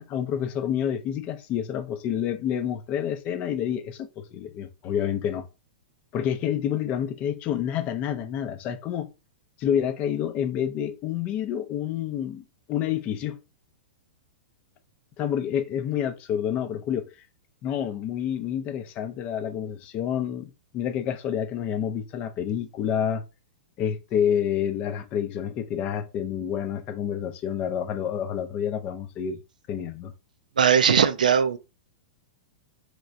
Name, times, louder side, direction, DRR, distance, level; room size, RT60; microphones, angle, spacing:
voice 1, 0.0-5.5 6.1-9.1 9.6-13.4 15.2-17.1 17.6-23.2 23.8-29.4 29.7-30.1, left 9 dB, 30° left, 0.5 m, -28 dB
voice 2, 30.6-31.6, right 7 dB, 65° right, 0.4 m, -19 dB
3.0 x 3.0 x 2.6 m
figure-of-eight pair, 100°, 5 cm